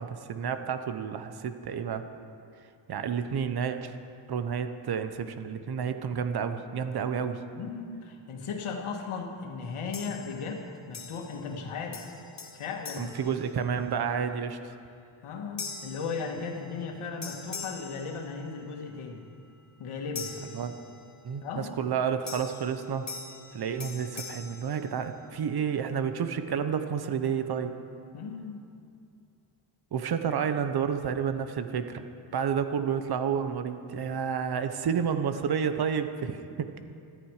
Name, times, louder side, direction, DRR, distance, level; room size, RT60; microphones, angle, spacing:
voice 1, 0.0-2.0 2.9-3.9 4.3-7.4 13.0-14.7 20.5-20.7 21.2-23.1 23.5-27.7 29.9-32.0 32.3-36.7, right 7 dB, 50° right, 9 dB, 1.1 m, -30 dB
voice 2, 7.5-12.1 12.5-13.1 15.2-19.2 19.8-20.3 21.4-21.7 28.1-28.7, left 5 dB, 75° left, 2 dB, 2.3 m, -36 dB
sound 1, 9.9-10.6 10.9-11.6 11.9-14.1 14.6-14.9 15.6-16.9 17.2-18.8 20.1-21.3 22.3-25.5, left 4 dB, 35° left, 1.8 m, -43 dB
21.0 x 14.0 x 5.0 m, 2.5 s
cardioid pair, 130°, 50 cm